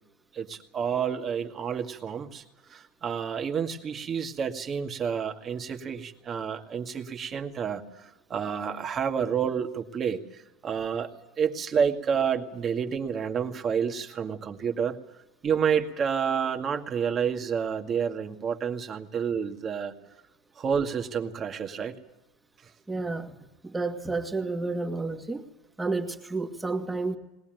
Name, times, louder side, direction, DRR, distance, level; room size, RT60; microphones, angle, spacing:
voice 1, 0.3-2.4 2.7-11.1 11.4-15.0 15.4-19.9 20.6-22.0, right 7 dB, 30° right, 4 dB, 2.1 m, -29 dB
voice 2, 22.9-23.3 23.6-25.4 25.8-27.2, right 3 dB, 10° right, 4 dB, 2.2 m, -30 dB
21.0 x 19.0 x 9.2 m, 0.97 s
supercardioid pair, 140°, 0 cm